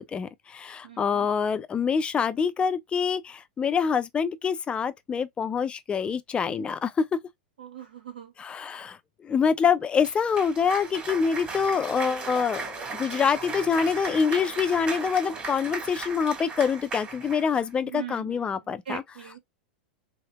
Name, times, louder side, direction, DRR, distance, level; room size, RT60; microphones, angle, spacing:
voice 1, 0.0-7.1 8.4-9.0 9.2-19.0, left 6 dB, 20° left, 0.4 m, -26 dB
voice 2, 0.8-1.3 7.6-8.3 17.8-19.4, right 10 dB, 80° right, 1.4 m, -41 dB
Cheering / Applause, 10.0-17.7, right 4 dB, 25° right, 1.7 m, -36 dB
3.3 x 2.8 x 2.2 m
hypercardioid pair, 105°, 5 cm